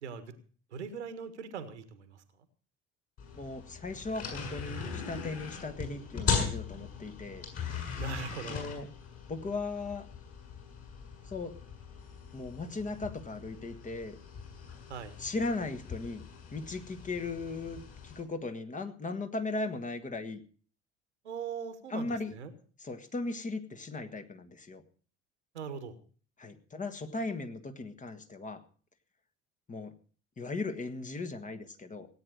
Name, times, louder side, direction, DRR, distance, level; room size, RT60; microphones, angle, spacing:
voice 1, 0.0-0.3 0.7-2.2 7.6-8.7 14.9-15.2 21.2-22.5 25.5-26.0, right 6 dB, 75° right, 11 dB, 1.7 m, -41 dB
sound 1, 3.2-18.2, left 6 dB, 40° left, 6.8 m, -39 dB
voice 2, 3.4-7.4 8.5-8.9 9.3-10.1 11.2-11.5 12.3-14.2 15.2-16.2 16.5-20.4 21.9-22.3 22.8-24.8 26.4-28.6 29.7-29.9 30.4-32.1, left 3 dB, 20° left, 8 dB, 1.7 m, -37 dB
17.0 x 9.2 x 6.6 m, 0.42 s
figure-of-eight pair, 60°, 34 cm